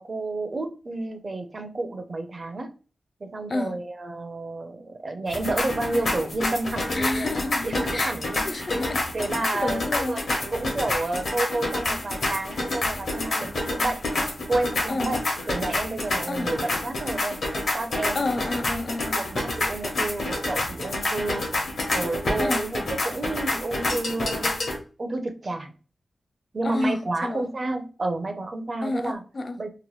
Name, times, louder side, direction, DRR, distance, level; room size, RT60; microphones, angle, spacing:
voice 1, 0.0-2.7 3.2-8.7 9.1-14.0 14.5-15.2 15.5-17.4 17.7-18.3 18.7-18.8 19.1-21.5 21.9-24.7 25.0-25.7 26.5-29.2 29.6-29.7, right 2 dB, 40° right, 0.5 m, -30 dB
sound 1, 5.3-24.8, left 2 dB, 70° left, 1.0 m, -28 dB
voice 2, 6.9-9.1 9.5-10.2 14.9-15.2 16.3-16.6 18.1-19.3 22.4-22.7 26.6-27.5 28.8-29.6, left 2 dB, 45° left, 0.4 m, -30 dB
2.9 x 2.2 x 3.0 m
wide cardioid pair, 125°, 0 cm